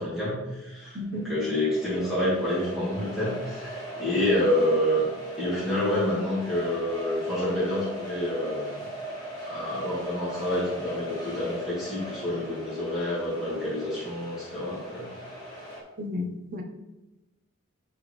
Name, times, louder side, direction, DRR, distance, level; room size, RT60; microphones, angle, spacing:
voice 1, 0.0-5.1 5.4-8.8 9.5-15.1, left 1 dB, ahead, -11 dB, 2.6 m, -28 dB
voice 2, 0.9-1.3 16.0-16.6, left 2 dB, 45° right, 3 dB, 0.9 m, -33 dB
sound 1, 1.1-15.8, right 1 dB, 20° left, 1.9 m, -39 dB
9.9 x 4.6 x 3.2 m, 1.0 s
head